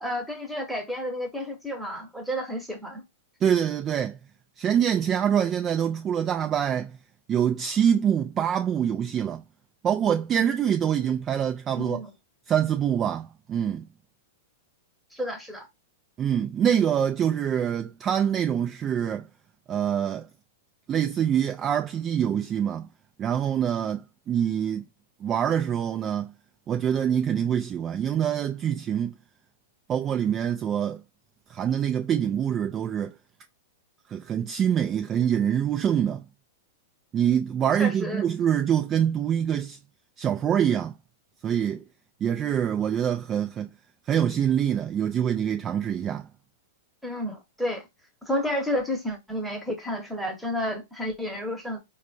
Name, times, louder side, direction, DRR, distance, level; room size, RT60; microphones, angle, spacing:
voice 1, 0.0-3.0 11.7-12.1 15.1-15.7 37.8-38.2 47.0-47.8 48.2-51.8, equal, ahead, 1.0 m, -31 dB
voice 2, 3.4-4.2 4.6-7.0 7.3-9.4 9.8-12.0 12.5-13.9 16.2-19.3 19.7-20.3 20.9-22.9 23.2-24.8 25.2-26.3 26.7-29.1 29.9-31.0 31.5-33.1 34.1-36.2 37.1-39.8 40.2-40.9 41.4-41.8 42.2-43.7 44.1-46.3, right 9 dB, 25° right, 0.3 m, -25 dB
3.9 x 2.2 x 2.6 m
hypercardioid pair, 115°, 0 cm